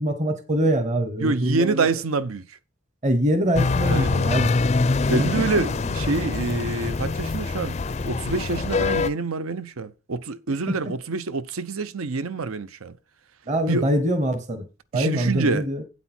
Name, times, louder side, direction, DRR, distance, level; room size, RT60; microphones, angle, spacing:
voice 1, 0.0-1.9 3.0-4.6 5.1-5.6 10.7-10.8 13.5-14.7 14.9-15.8, equal, 35° right, 1.1 m, -24 dB
voice 2, 1.2-2.6 3.9-4.3 5.1-7.8 8.0-13.0 13.7-13.9 14.9-15.7, right 3 dB, 85° right, 0.7 m, -26 dB
sound 1, 3.6-9.1, left 3 dB, 30° left, 0.4 m, -24 dB
8.5 x 8.2 x 4.3 m
head